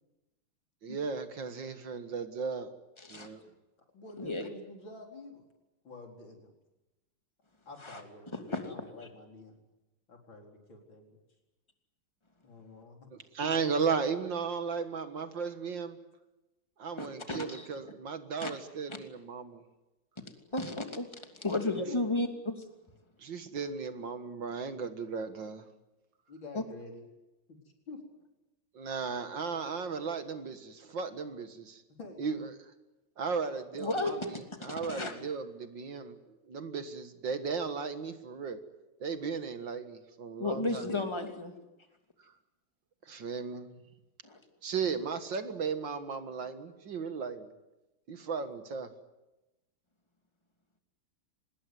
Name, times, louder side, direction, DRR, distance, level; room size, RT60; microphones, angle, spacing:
voice 1, 0.8-2.7 3.1-3.5 13.1-16.0 16.8-19.6 23.2-25.7 28.7-31.8 32.2-32.5 33.2-38.6 39.0-40.9 42.2-42.3 43.0-43.8 44.6-47.5 48.1-48.9, right 5 dB, 60° right, 9 dB, 2.2 m, -35 dB
voice 2, 3.0-3.3 4.2-4.5 7.8-8.0 8.3-8.6 17.0-17.7 18.4-18.5 18.9-19.0 20.5-21.1 21.4-22.6 26.5-26.6 33.8-34.3 34.6-35.2 40.4-41.5 44.2-44.4, left 2 dB, 15° left, 5 dB, 2.7 m, -33 dB
voice 3, 3.9-5.4 5.8-6.5 7.7-8.3 8.6-9.6 10.1-11.1 12.4-13.1 21.3-21.5 21.8-22.0 26.3-27.0 27.5-27.6 27.9-28.0 32.0-32.5 40.6-41.3, left 3 dB, 65° left, 2 dB, 5.0 m, -48 dB
25.5 x 20.5 x 9.5 m, 1.0 s
omnidirectional pair, 2.3 m